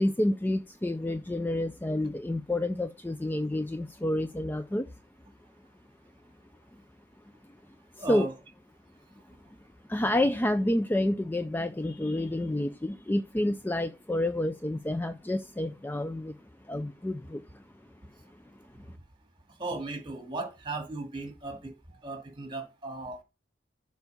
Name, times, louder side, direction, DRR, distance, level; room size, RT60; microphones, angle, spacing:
voice 1, 0.0-4.9 8.1-8.3 9.9-16.3 16.7-17.4, left 1 dB, 10° left, 0.4 m, -29 dB
voice 2, 8.0-8.3 19.6-21.7 22.0-23.2, right 2 dB, 25° right, 2.2 m, -36 dB
7.1 x 4.6 x 6.8 m
head